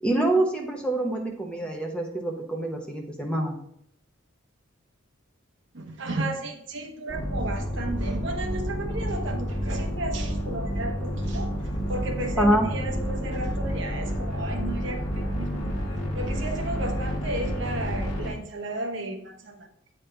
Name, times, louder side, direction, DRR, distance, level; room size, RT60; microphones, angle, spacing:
voice 1, 0.0-3.6 12.4-12.7, right 1 dB, 5° left, 0.9 m, -25 dB
voice 2, 5.7-15.8 16.1-19.7, right 2 dB, 60° right, 0.9 m, -34 dB
sound 1, 7.1-18.3, equal, 35° left, 1.7 m, -30 dB
8.4 x 5.3 x 3.4 m
head